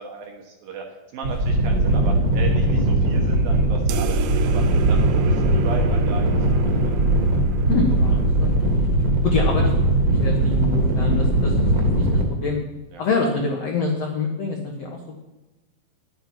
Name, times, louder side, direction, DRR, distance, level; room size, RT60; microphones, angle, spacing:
voice 1, 0.0-4.6 4.9-7.0 8.1-8.2 12.9-13.0, right 5 dB, 70° right, 2 dB, 2.5 m, -36 dB
sound 1, 1.2-12.3, right 1 dB, 50° right, 2.0 m, -20 dB
sound 2, 3.9-8.8, right 11 dB, 85° right, 3.3 m, -33 dB
voice 2, 7.7-8.8 9.2-9.7 10.1-12.6 13.0-15.2, left 3 dB, 80° left, 0 dB, 1.4 m, -26 dB
11.0 x 10.0 x 5.9 m, 1.1 s
omnidirectional pair, 5.4 m